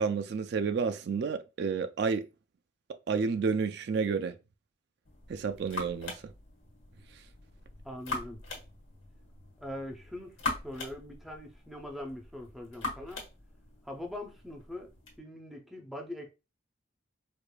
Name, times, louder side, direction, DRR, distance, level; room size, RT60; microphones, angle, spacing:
voice 1, 0.0-2.3 3.1-4.3 5.3-6.2, right 5 dB, 55° right, 0.3 m, -30 dB
sound 1, 5.0-15.2, left 3 dB, 85° left, 1.4 m, -42 dB
voice 2, 7.8-8.4 9.6-10.4 10.6-13.2 13.8-14.9 15.2-16.3, left 1 dB, ahead, 0.6 m, -42 dB
4.7 x 2.5 x 2.2 m
head